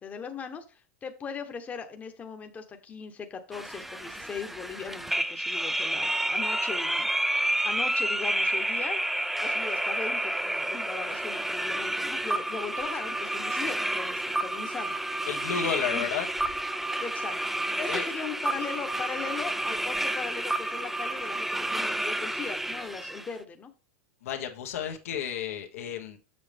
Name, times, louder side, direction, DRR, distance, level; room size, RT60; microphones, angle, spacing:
voice 1, 0.0-7.1 7.6-9.0 9.4-15.0 15.9-16.0 17.0-23.7, left 6 dB, 20° left, 1.0 m, -39 dB
sound 1, 3.5-23.3, right 1 dB, 5° right, 0.4 m, -30 dB
voice 2, 15.3-16.3 17.9-18.1 24.2-26.2, left 8 dB, 90° left, 1.4 m, -32 dB
6.9 x 6.7 x 3.5 m
supercardioid pair, 140°, 8 cm